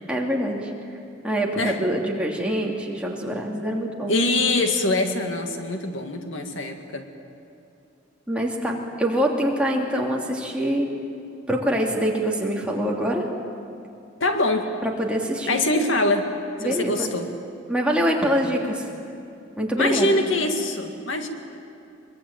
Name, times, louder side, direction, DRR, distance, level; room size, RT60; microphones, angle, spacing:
voice 1, 0.1-0.7 1.2-4.1 8.3-10.9 11.5-13.3 14.8-15.6 16.6-17.1 17.7-18.9 19.6-20.1, equal, 5° right, -2 dB, 2.9 m, -24 dB
voice 2, 4.1-7.1 14.2-14.7 15.5-16.3 16.6-17.3 19.8-21.3, left 2 dB, 75° left, 5 dB, 2.3 m, -23 dB
23.5 x 23.5 x 9.0 m, 2.7 s
head